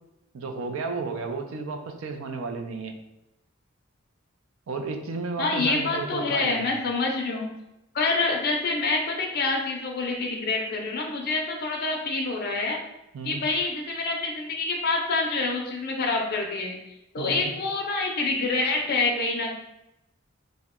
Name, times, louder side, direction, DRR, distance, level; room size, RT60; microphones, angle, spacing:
voice 1, 0.3-2.9 4.7-6.8 13.1-13.4 17.2-17.5, right 4 dB, 70° right, 5 dB, 0.4 m, -33 dB
voice 2, 5.4-7.5 7.9-12.8 13.2-16.7 17.1-19.5, left 3 dB, 50° left, 0 dB, 0.4 m, -26 dB
2.7 x 2.1 x 3.5 m, 0.89 s
head